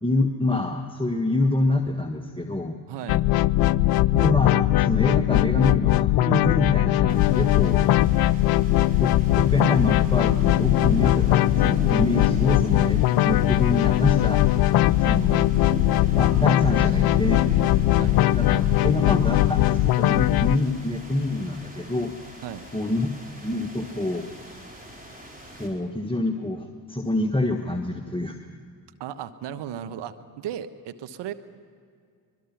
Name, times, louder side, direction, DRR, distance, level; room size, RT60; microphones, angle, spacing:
voice 1, 0.0-2.8 4.1-7.9 9.0-14.4 15.0-15.5 16.2-17.4 18.3-22.1 22.7-23.1 23.4-24.3 25.6-28.4, left 2 dB, 10° left, 4 dB, 1.4 m, -26 dB
voice 2, 2.9-3.2 15.3-15.7 18.0-18.2 22.4-22.7 29.0-31.3, right 10 dB, 55° right, 9 dB, 1.1 m, -35 dB
sound 1, 3.1-20.6, left 15 dB, 50° left, 0.5 m, -20 dB
sound 2, 7.1-25.7, equal, 15° right, 4.6 m, -38 dB
23.5 x 21.5 x 5.9 m, 2.2 s
figure-of-eight pair, 40°, 50 cm